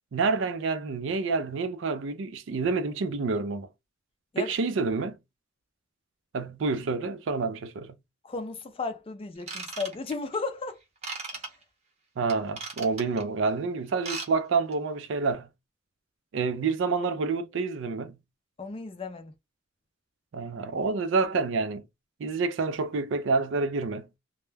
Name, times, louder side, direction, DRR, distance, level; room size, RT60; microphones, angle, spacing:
voice 1, 0.1-3.7 4.4-5.2 6.3-8.0 12.2-15.5 16.3-18.2 20.3-21.8 22.2-24.1, right 4 dB, 65° right, 0.4 m, -28 dB
voice 2, 8.2-10.8 18.6-19.3, left 3 dB, 30° left, 0.4 m, -34 dB
Ratchet pawl / Tools, 9.4-10.3 11.0-11.5 12.3-13.2 13.9-14.3 14.5-14.7 15.2-15.3, right 4 dB, 35° right, 0.7 m, -36 dB
2.2 x 2.1 x 3.2 m
head